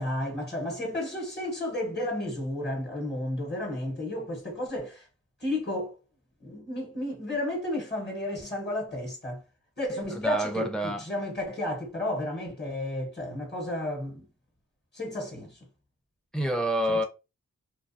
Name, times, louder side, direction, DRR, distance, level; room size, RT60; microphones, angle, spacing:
voice 1, 0.0-5.1 5.4-5.9 6.4-9.4 9.8-10.7 11.0-14.2 14.9-15.6 16.9-17.0, left 1 dB, 35° left, 1.1 m, -32 dB
voice 2, 10.1-11.0 16.3-17.0, equal, ahead, 0.5 m, -28 dB
2.3 x 2.2 x 2.6 m
cardioid pair, 45°, 30 cm